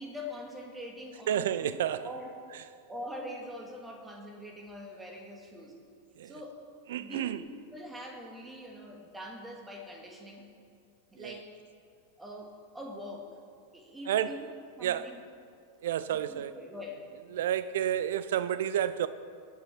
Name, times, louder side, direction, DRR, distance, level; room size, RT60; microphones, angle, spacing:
voice 1, 0.0-1.5 2.0-2.3 2.6-5.8 6.2-6.7 7.0-7.3 7.7-10.5 11.1-11.5 12.2-13.3 13.7-14.5 14.8-15.1 16.1-17.1, left 1 dB, 10° right, 2.0 m, -43 dB
voice 2, 1.3-2.1 2.5-2.6 6.2-6.3 6.9-7.4 11.2-11.4 14.1-14.4 14.8-15.2 15.8-16.6 17.3-19.1, right 10 dB, 60° right, 0.5 m, -30 dB
22.0 x 8.6 x 4.4 m
figure-of-eight pair, 90°, 0 cm